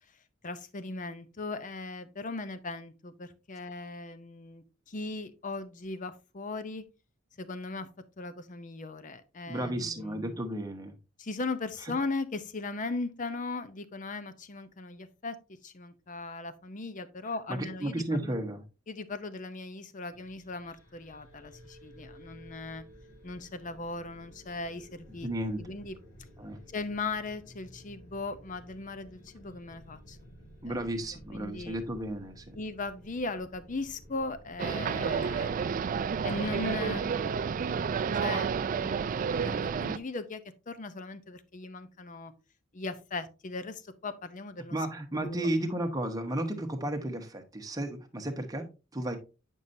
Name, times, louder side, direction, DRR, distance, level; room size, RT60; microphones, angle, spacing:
voice 1, 0.4-6.8 7.4-7.9 8.2-10.4 11.2-15.4 15.6-18.4 18.9-22.8 23.2-25.3 25.6-26.0 26.7-30.2 30.7-30.8 31.3-31.8 32.5-35.8 36.2-37.3 38.2-42.3 42.7-44.8 45.2-45.5, left 3 dB, 40° left, 0.6 m, -38 dB
voice 2, 9.5-10.9 11.8-11.9 17.5-18.6 25.2-25.6 26.4-26.6 30.6-32.6 44.7-49.2, right 1 dB, 15° right, 1.0 m, -33 dB
sound 1, 20.1-37.5, equal, 85° left, 3.0 m, -53 dB
sound 2, 34.6-40.0, right 6 dB, 40° right, 0.3 m, -30 dB
9.1 x 5.4 x 2.6 m
head